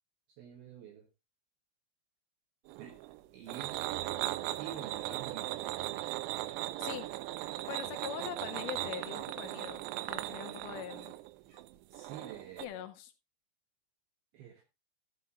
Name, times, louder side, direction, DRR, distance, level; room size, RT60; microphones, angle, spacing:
voice 1, 0.4-1.1 2.8-3.0 3.3-3.8 4.6-5.6 7.8-8.1 11.9-12.8 14.3-14.6, right 9 dB, 70° right, 2.4 m, -47 dB
sound 1, 2.7-12.7, right 16 dB, 90° right, 3.4 m, -38 dB
sound 2, 4.0-4.1 4.5-4.6 5.0-5.1 5.5-5.6 5.9-6.1 6.5-6.6 7.0-7.1 7.5-7.6 8.0-8.1 8.5-8.6 9.0-9.1 9.5-9.6 10.0-10.1 10.5-10.6 11.0-11.1 11.5-11.6, right 3 dB, 40° right, 8.0 m, -64 dB
voice 2, 6.8-7.1 7.7-11.1 12.6-13.1, left 11 dB, 80° left, 3.2 m, -43 dB
13.5 x 8.1 x 2.6 m
omnidirectional pair, 6.0 m